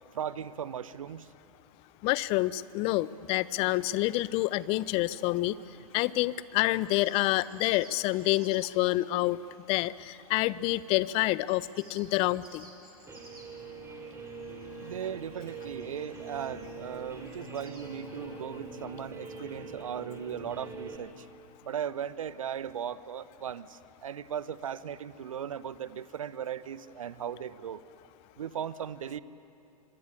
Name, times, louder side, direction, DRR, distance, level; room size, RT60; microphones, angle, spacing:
voice 1, 0.1-1.3 14.8-21.3 21.6-27.8 28.4-29.2, right 9 dB, 65° right, 16 dB, 1.0 m, -37 dB
voice 2, 2.0-5.6 5.9-9.4 9.7-12.6, left 18 dB, 30° left, 19 dB, 0.7 m, -28 dB
sound 1, 2.9-17.8, right 2 dB, 85° right, 5.8 m, -59 dB
Guitar, 13.1-21.0, right 3 dB, 15° right, 4.3 m, -43 dB
25.5 x 24.0 x 9.9 m, 2.7 s
figure-of-eight pair, 105°, 19 cm